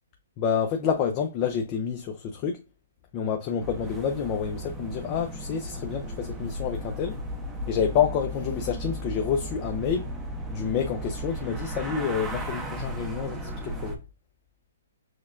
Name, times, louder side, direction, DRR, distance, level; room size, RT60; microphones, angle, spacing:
voice 1, 0.4-2.6 3.1-7.2 7.7-10.1 10.5-14.0, left 7 dB, 30° left, 0.5 m, -28 dB
sound 1, 3.6-14.0, equal, 10° right, 0.7 m, -35 dB
6.2 x 2.2 x 2.4 m
hypercardioid pair, 150°, 0 cm